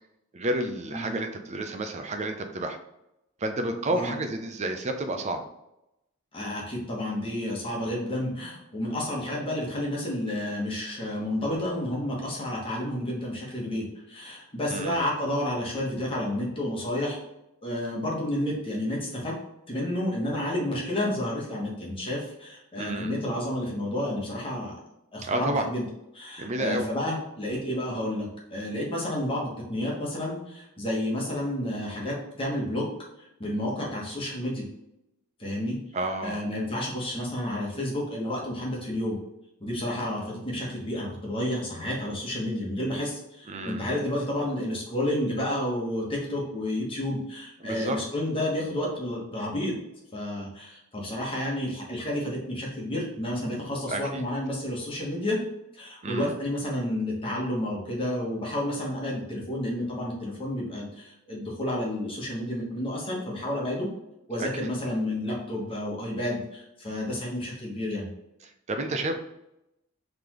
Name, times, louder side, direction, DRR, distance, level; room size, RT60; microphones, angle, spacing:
voice 1, 0.3-2.8 3.4-5.4 14.7-15.1 22.8-23.1 25.2-25.7 26.4-26.9 35.9-36.4 43.5-43.9 47.6-48.0 53.9-54.3 56.0-56.3 64.4-64.7 68.4-69.2, right 2 dB, 30° right, 6 dB, 0.5 m, -30 dB
voice 2, 6.3-17.2 17.6-19.3 19.7-24.8 25.1-25.8 26.1-32.9 33.2-34.7 35.4-35.8 36.2-39.2 39.6-49.7 50.1-55.4 55.7-63.9 64.3-68.1, left 1 dB, 25° left, -3 dB, 1.2 m, -30 dB
4.0 x 3.4 x 3.0 m, 0.87 s
head